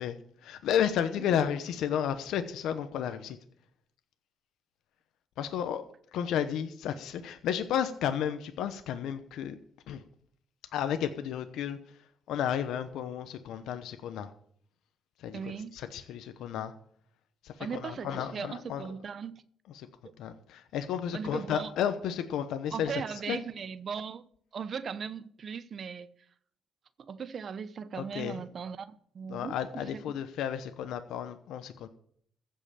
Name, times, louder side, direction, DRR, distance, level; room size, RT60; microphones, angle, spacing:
voice 1, 0.0-3.4 5.4-5.8 6.1-9.6 9.9-10.0 10.7-11.8 12.3-14.3 15.2-16.7 17.4-18.9 19.7-19.9 20.2-23.4 28.0-28.4 29.3-31.9, left 9 dB, 85° left, 0.9 m, -32 dB
voice 2, 15.3-15.7 17.6-19.3 21.1-21.7 22.7-24.2 24.5-26.1 27.0-29.9, right 6 dB, 50° right, 0.8 m, -38 dB
15.0 x 5.7 x 8.7 m
cardioid pair, 90°, 0 cm